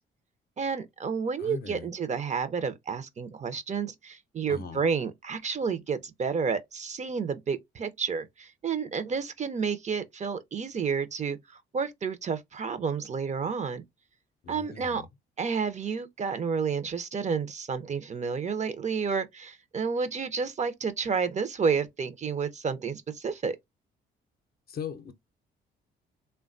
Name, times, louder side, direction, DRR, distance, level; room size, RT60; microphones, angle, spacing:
voice 1, 0.6-13.8 14.5-15.0 15.4-23.6, right 5 dB, 35° right, 0.5 m, -30 dB
voice 2, 1.4-1.9 4.5-4.8 14.4-15.1 24.7-25.1, left 6 dB, 50° left, 0.6 m, -39 dB
3.2 x 2.2 x 2.5 m
cardioid pair, 90°, 20 cm